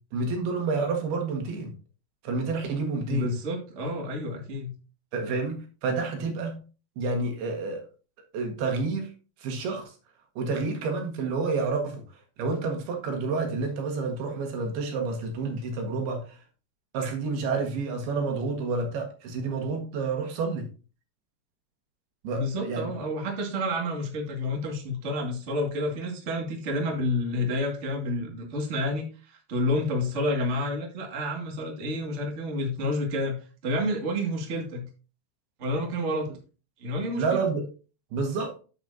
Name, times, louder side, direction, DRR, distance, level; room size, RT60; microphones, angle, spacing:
voice 1, 0.1-1.7 2.2-3.3 5.1-6.5 7.0-7.8 8.3-9.1 9.4-9.9 10.4-16.4 16.9-20.7 22.2-22.9 37.2-37.6 38.1-38.5, right 4 dB, 75° right, 3 dB, 3.6 m, -29 dB
voice 2, 3.1-4.7 22.3-34.9 35.6-36.3 36.8-37.4, left 1 dB, 30° right, 1 dB, 1.5 m, -29 dB
9.0 x 8.6 x 2.8 m, 0.35 s
omnidirectional pair, 4.7 m